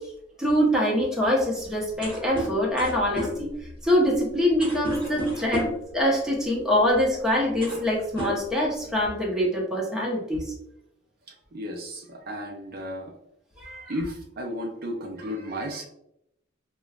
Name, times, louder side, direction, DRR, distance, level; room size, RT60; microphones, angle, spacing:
voice 1, 0.4-3.5 3.8-10.4 13.6-13.9, equal, 5° right, -3 dB, 0.8 m, -24 dB
sound 1, 2.0-5.9 6.9-7.1 7.4-7.9 8.1-9.0, equal, 25° right, 1.1 m, -33 dB
voice 2, 11.3-13.1 13.9-15.9, equal, 50° right, 2 dB, 0.5 m, -34 dB
5.0 x 2.2 x 2.3 m, 0.77 s
head